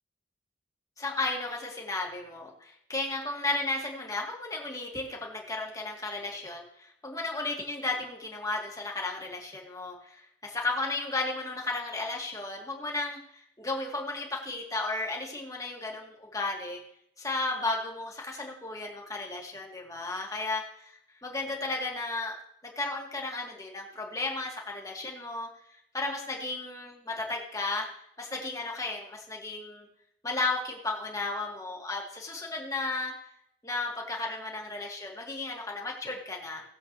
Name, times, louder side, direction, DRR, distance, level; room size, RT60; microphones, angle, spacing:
voice 1, 1.0-16.8 17.2-22.4 22.6-25.5 25.9-27.9 28.2-29.9 30.2-33.1 33.6-36.6, left 2 dB, 20° left, -1 dB, 2.0 m, -34 dB
18.5 x 7.7 x 3.2 m, 0.72 s
head